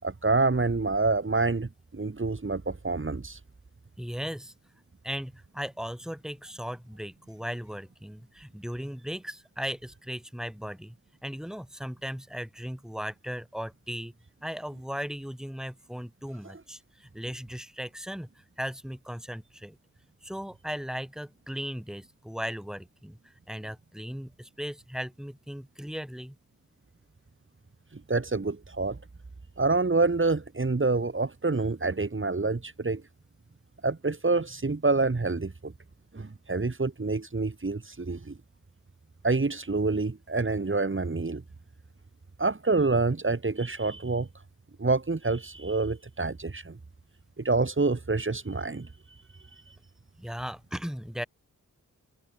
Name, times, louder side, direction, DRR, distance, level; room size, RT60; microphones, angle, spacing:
voice 1, 0.0-3.4 28.1-29.0 29.6-33.0 33.8-35.7 36.1-38.3 39.2-41.4 42.4-44.3 44.8-46.8 47.4-48.9, right 3 dB, 35° right, 4.6 m, -27 dB
voice 2, 4.0-4.5 5.0-11.0 11.2-14.1 14.4-19.8 20.2-26.3 50.2-51.3, equal, ahead, 5.7 m, -37 dB
open air
cardioid pair, 60°, 33 cm